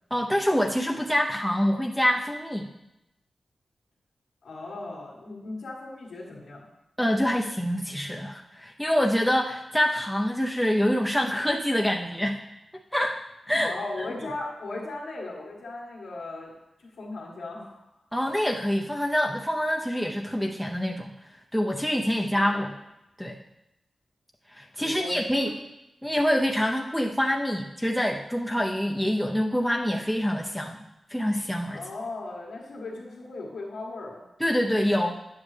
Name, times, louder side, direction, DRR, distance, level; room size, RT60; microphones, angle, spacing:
voice 1, 0.1-2.7 7.0-12.4 12.9-13.2 13.5-14.3 18.1-21.1 21.5-22.7 23.2-23.4 24.5-25.5 26.0-30.8 31.1-31.8 34.4-35.2, equal, ahead, 0 dB, 0.6 m, -26 dB
voice 2, 4.4-6.6 13.6-16.5 17.0-17.8 22.3-22.6 24.8-25.5 31.7-34.2, left 2 dB, 85° left, -5 dB, 1.7 m, -37 dB
10.0 x 7.3 x 3.3 m, 0.91 s
wide cardioid pair, 90°, 0 cm